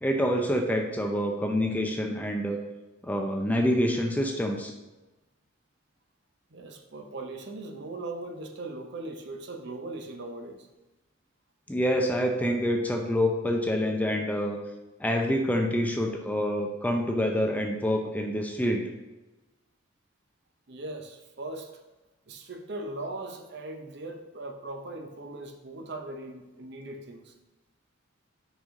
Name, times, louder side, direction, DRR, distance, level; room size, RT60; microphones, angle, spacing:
voice 1, 0.0-2.6 3.0-4.7 11.7-14.6 15.0-18.9, equal, 10° left, 3 dB, 0.5 m, -27 dB
voice 2, 6.5-10.7 20.7-21.7 22.3-27.3, right 2 dB, 55° right, 5 dB, 0.7 m, -39 dB
6.1 x 5.4 x 3.7 m, 1.1 s
head